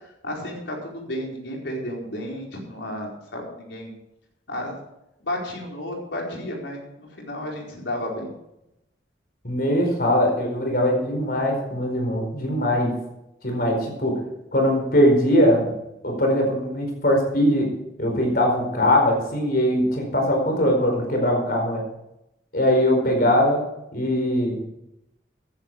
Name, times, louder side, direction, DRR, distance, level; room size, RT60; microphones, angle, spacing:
voice 1, 0.2-3.9 4.5-4.8 5.2-8.3, left 1 dB, 80° left, -1 dB, 4.5 m, -32 dB
voice 2, 9.4-13.0 13.4-14.2 14.5-15.7 16.0-21.8 22.5-23.7 23.9-24.6, equal, 55° left, 2 dB, 4.6 m, -21 dB
14.5 x 10.5 x 4.7 m, 0.86 s
head